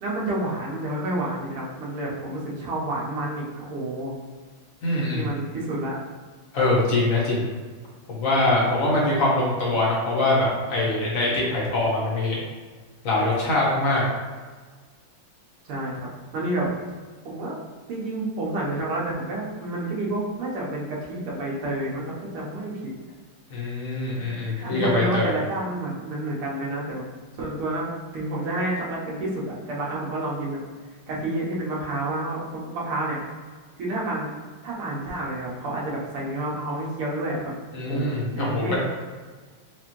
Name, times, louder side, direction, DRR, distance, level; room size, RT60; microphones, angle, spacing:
voice 1, 0.0-4.1 5.1-6.0 15.7-16.1 16.3-16.7 17.3-17.6 17.9-22.9 24.6-27.0 27.4-27.9 28.1-30.6 31.1-33.2 33.8-34.3 34.6-37.5 37.9-38.8, right 1 dB, 85° right, -5 dB, 1.9 m, -29 dB
voice 2, 4.8-5.3 6.5-7.4 8.1-12.4 13.0-14.0 23.5-25.3 37.7-38.8, left 2 dB, 50° left, -5 dB, 1.0 m, -23 dB
4.7 x 2.5 x 3.0 m, 1.5 s
omnidirectional pair, 2.4 m